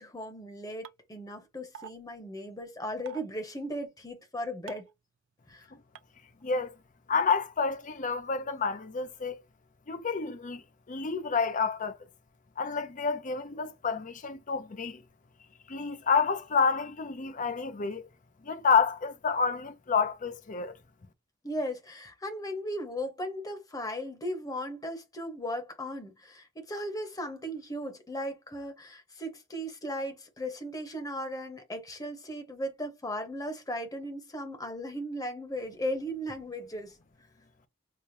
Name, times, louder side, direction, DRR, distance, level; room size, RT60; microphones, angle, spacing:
voice 1, 0.0-4.9 5.5-5.7 21.4-37.0, equal, 20° left, 1.0 m, -37 dB
sound 1, 0.8-0.9 1.7-1.9 3.1-3.2 4.7-4.9 5.9-6.0 7.3-7.4, right 7 dB, 80° right, 0.4 m, -44 dB
voice 2, 6.4-6.7 7.1-9.4 9.9-12.0 12.6-15.0 15.7-18.1 18.4-20.8, left 5 dB, 40° left, 0.6 m, -29 dB
4.9 x 2.2 x 2.7 m
head